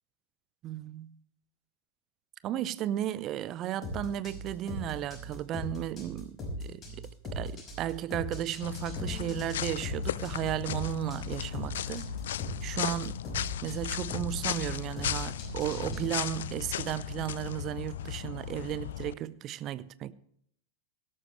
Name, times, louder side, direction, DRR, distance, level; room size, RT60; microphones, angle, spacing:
voice 1, 0.6-1.1 2.4-6.4 6.6-6.8 7.3-12.1 12.6-13.2 13.6-20.1, right 12 dB, 35° right, 0.6 m, -34 dB
sound 1, 3.8-16.1, left 1 dB, 25° left, 5.4 m, -39 dB
sound 2, 8.6-19.1, left 11 dB, 60° left, 0.4 m, -36 dB
17.0 x 13.0 x 3.2 m
figure-of-eight pair, 90°, 0 cm